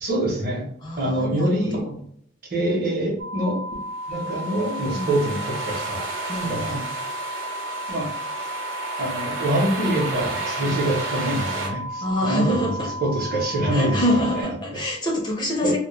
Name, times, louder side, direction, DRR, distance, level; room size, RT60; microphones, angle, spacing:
voice 1, 0.0-0.7 1.0-1.8 2.5-3.6 4.1-6.1 6.4-6.8 7.9-8.1 9.0-12.7 13.0-14.0 14.7-14.8 15.6-15.7, right 1 dB, 50° right, -1 dB, 0.7 m, -25 dB
voice 2, 0.8-1.9 4.9-5.3 6.3-6.9 12.0-12.9 13.7-15.8, left 1 dB, 25° left, -1 dB, 0.4 m, -26 dB
sound 1, 3.2-14.4, equal, 65° right, 0.3 m, -33 dB
sound 2, 4.0-11.7, right 3 dB, 90° right, 0.8 m, -33 dB
2.1 x 2.1 x 3.0 m, 0.68 s
head